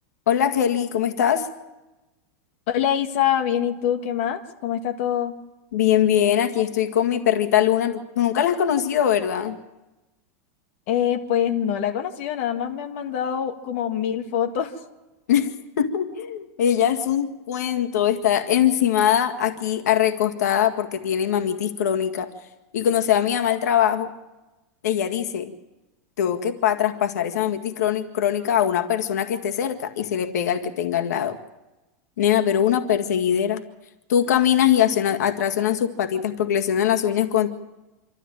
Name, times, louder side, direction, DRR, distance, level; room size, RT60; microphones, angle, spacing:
voice 1, 0.3-1.5 5.7-9.6 15.3-15.5 15.8-22.3 22.7-24.1 24.8-25.5 26.2-31.4 32.2-33.6 34.1-37.5, left 10 dB, 90° left, 6 dB, 1.9 m, -22 dB
voice 2, 2.7-5.4 10.9-14.7, left 9 dB, 50° left, 5 dB, 1.8 m, -24 dB
26.5 x 13.5 x 9.0 m, 1.1 s
supercardioid pair, 170°, 9 cm